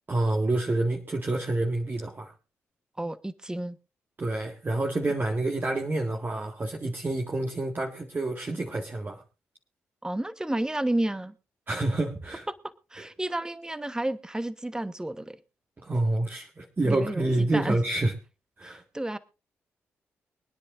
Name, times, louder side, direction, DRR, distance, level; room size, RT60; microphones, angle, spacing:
voice 1, 0.1-2.3 4.2-9.2 11.7-12.5 13.0-13.1 15.8-18.1 18.6-18.8, right 2 dB, 35° right, 1.9 m, -28 dB
voice 2, 3.0-3.8 10.0-11.4 12.5-12.6 12.9-15.4 16.8-17.8 18.6-19.2, right 1 dB, 10° right, 1.1 m, -31 dB
24.5 x 10.0 x 2.6 m
hypercardioid pair, 40°, 6 cm